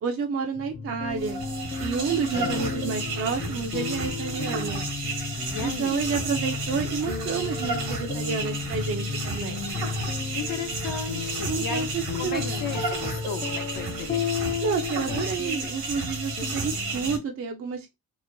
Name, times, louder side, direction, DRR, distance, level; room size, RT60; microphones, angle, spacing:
voice 1, 0.0-1.4 1.8-4.8 5.6-9.7 11.5-12.7 14.6-17.9, right 5 dB, 40° right, 0.5 m, -30 dB
sound 1, 0.5-17.2, left 5 dB, 30° left, 0.5 m, -33 dB
sound 2, 1.1-17.2, right 4 dB, 75° right, 1.1 m, -33 dB
voice 2, 2.3-2.7 5.5-6.0 10.3-11.9 12.1-14.3, left 6 dB, 60° left, 0.9 m, -35 dB
2.9 x 2.1 x 2.5 m
cardioid pair, 75°, 37 cm